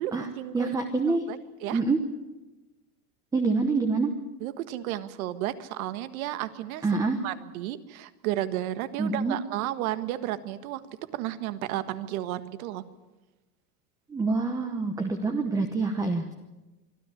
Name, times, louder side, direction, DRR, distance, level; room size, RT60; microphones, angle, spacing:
voice 1, 0.0-0.7 1.1-1.8 4.4-10.8 11.1-12.8, right 13 dB, 60° right, 12 dB, 1.6 m, -33 dB
voice 2, 0.5-1.3 1.7-2.0 3.3-4.1 6.8-7.2 9.0-9.4 14.1-16.3, right 3 dB, 5° right, 6 dB, 0.9 m, -26 dB
25.0 x 13.0 x 9.8 m, 1.1 s
supercardioid pair, 165°, 46 cm